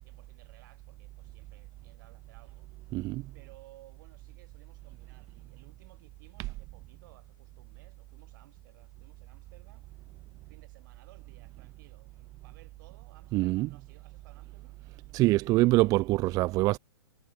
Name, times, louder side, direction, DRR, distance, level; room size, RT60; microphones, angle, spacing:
voice 1, 0.0-2.7 3.3-9.9 10.4-14.8, right 17 dB, 50° right, 6.7 m, -60 dB
voice 2, 2.9-3.3 13.3-13.7 15.1-16.8, right 19 dB, 25° right, 0.4 m, -24 dB
hypercardioid pair, 125°, 13 cm